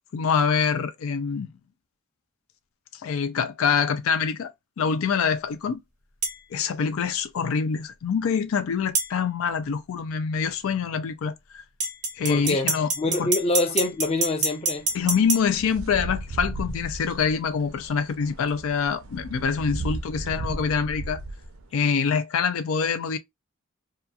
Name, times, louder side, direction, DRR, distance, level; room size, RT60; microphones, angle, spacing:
voice 1, 0.1-1.5 2.9-5.8 6.5-11.6 12.2-12.9 13.2-13.3 14.9-21.2 21.7-23.2, left 6 dB, 80° left, 0.4 m, -25 dB
sound 1, 6.2-6.4 8.9-9.1 11.8-15.4, right 3 dB, 35° right, 0.5 m, -26 dB
voice 2, 12.3-14.9, left 2 dB, 30° left, 0.5 m, -26 dB
sound 2, 14.8-21.7, right 2 dB, 90° right, 0.5 m, -35 dB
2.8 x 2.3 x 2.3 m
head